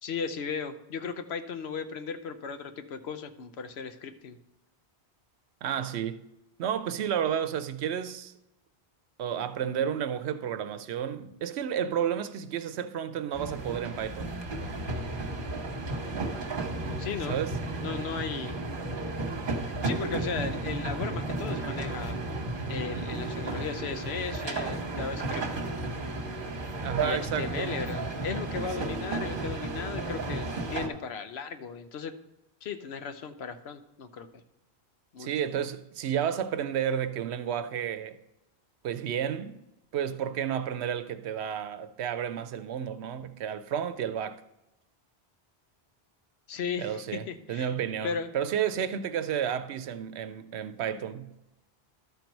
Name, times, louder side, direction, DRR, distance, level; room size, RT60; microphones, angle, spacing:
voice 1, 0.0-4.4 17.0-17.4 17.7-18.6 19.8-22.2 22.7-25.4 27.0-32.2 32.6-34.4 35.1-35.3 46.5-47.7 48.0-48.3, left 6 dB, 80° left, 1.0 m, -36 dB
voice 2, 5.6-6.2 6.6-8.3 9.2-14.4 17.3-17.5 26.8-27.8 35.2-38.2 38.8-39.6 39.9-44.4 46.8-47.2 47.5-51.3, right 9 dB, 85° right, 0.9 m, -31 dB
sound 1, 13.3-30.9, right 2 dB, 55° right, 1.3 m, -33 dB
12.0 x 4.5 x 5.2 m
omnidirectional pair, 1.1 m